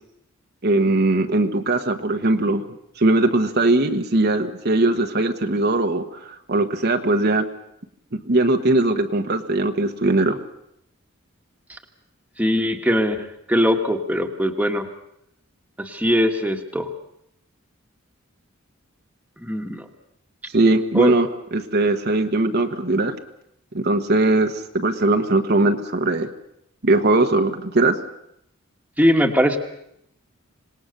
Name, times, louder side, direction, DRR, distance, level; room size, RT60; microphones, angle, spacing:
voice 1, 0.6-2.6 3.0-7.5 8.1-10.4 20.5-23.2 23.7-26.3 26.8-28.0, right 2 dB, 50° right, 5 dB, 1.2 m, -20 dB
voice 2, 12.4-14.9 15.8-16.9 19.4-19.9 20.9-21.1 29.0-29.6, equal, 5° right, 4 dB, 1.6 m, -21 dB
26.0 x 19.0 x 6.7 m, 0.75 s
head